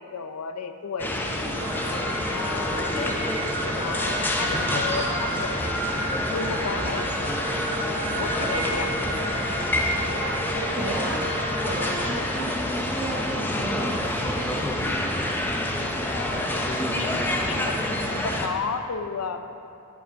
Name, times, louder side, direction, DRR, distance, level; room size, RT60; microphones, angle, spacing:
voice 1, 0.0-1.7 2.3-3.0 3.8-5.6 6.3-7.1 8.1-8.9 15.8-19.4, left 5 dB, 75° left, 8 dB, 0.5 m, -33 dB
sound 1, 1.0-18.5, left 1 dB, 10° left, 0.5 m, -28 dB
sound 2, 1.5-12.0, right 1 dB, 75° right, 1.7 m, -31 dB
voice 2, 10.7-11.3 11.6-14.7, right 1 dB, 25° right, -7 dB, 0.8 m, -33 dB
7.1 x 5.7 x 5.1 m, 2.6 s
head